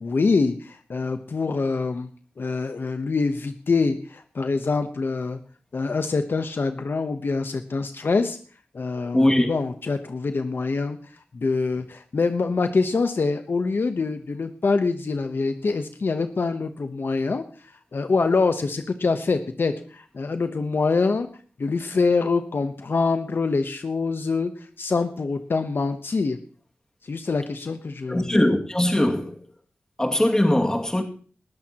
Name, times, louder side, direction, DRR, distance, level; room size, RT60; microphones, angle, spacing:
voice 1, 0.0-2.1 2.4-5.4 5.7-8.4 8.7-11.0 11.3-17.4 17.9-21.3 21.6-24.5 24.8-26.4 27.1-28.4, left 4 dB, 65° left, 1.0 m, -25 dB
voice 2, 9.1-9.5 28.1-29.4 30.0-31.0, left 1 dB, 15° left, 2.3 m, -20 dB
20.0 x 13.5 x 3.0 m
wide cardioid pair, 80°, 4 cm